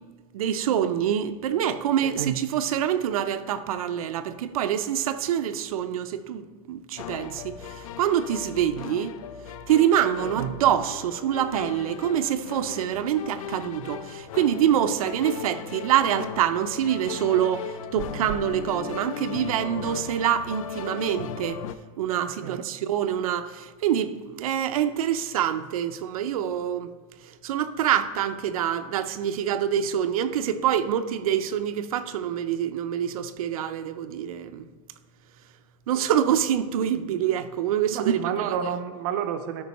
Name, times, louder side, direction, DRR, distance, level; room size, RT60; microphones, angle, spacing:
voice 1, 0.3-9.2 9.7-21.6 22.0-26.9 27.4-34.7 35.9-38.6, right 10 dB, 85° right, 0.6 m, -26 dB
sound 1, 7.0-21.7, left 8 dB, 75° left, 0.5 m, -37 dB
voice 2, 37.9-39.6, right 8 dB, 40° right, 0.5 m, -30 dB
12.5 x 4.6 x 4.2 m
supercardioid pair, 180°, 18 cm